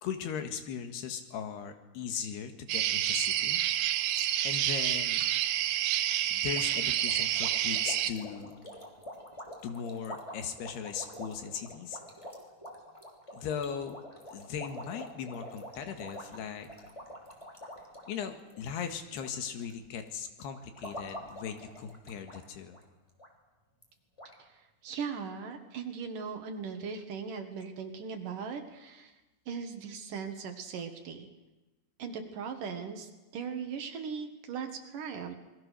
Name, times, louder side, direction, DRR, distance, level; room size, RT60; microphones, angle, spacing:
voice 1, 0.0-3.6 4.2-5.3 6.3-8.6 9.6-12.0 13.3-14.0 14.3-16.7 18.1-22.8, left 7 dB, 75° left, 7 dB, 3.7 m, -38 dB
sound 1, 2.7-8.1, right 12 dB, 90° right, 3.1 m, -29 dB
sound 2, 6.5-19.3 19.6-20.0 20.5-22.4 22.7-22.8 23.2-23.3 23.8-23.9 24.2-24.3, equal, 10° left, 2.8 m, -46 dB
voice 2, 24.4-29.1 29.5-31.3 32.0-35.3, right 6 dB, 60° right, 5 dB, 2.9 m, -39 dB
27.5 x 21.5 x 6.6 m, 1.1 s
omnidirectional pair, 4.8 m